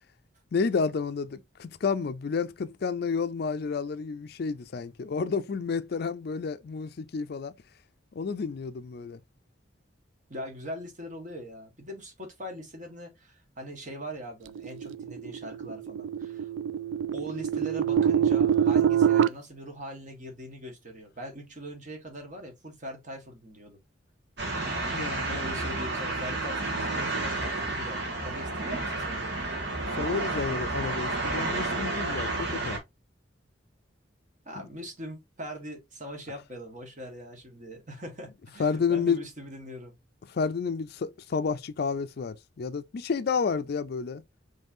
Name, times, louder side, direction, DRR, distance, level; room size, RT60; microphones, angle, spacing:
voice 1, 0.5-7.5 8.1-9.2 24.8-25.4 30.0-32.8 38.6-39.2 40.3-44.2, left 5 dB, 55° left, 0.4 m, -30 dB
voice 2, 10.3-16.5 17.1-23.8 25.3-29.3 34.4-39.9, equal, 40° right, 1.5 m, -41 dB
sound 1, 14.5-19.3, right 8 dB, 80° right, 0.3 m, -25 dB
sound 2, 24.4-32.8, right 2 dB, 60° right, 1.7 m, -31 dB
5.3 x 3.2 x 2.6 m
head